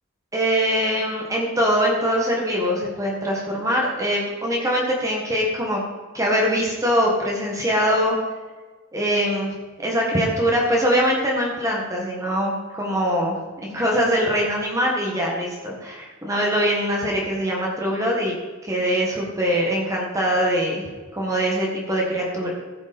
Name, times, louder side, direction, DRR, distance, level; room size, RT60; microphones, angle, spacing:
voice 1, 0.3-5.8 6.1-8.2 8.9-9.5 9.8-13.3 13.6-18.3 18.6-22.5, equal, 15° right, -2 dB, 1.6 m, -22 dB
15.0 x 5.3 x 5.2 m, 1.4 s
head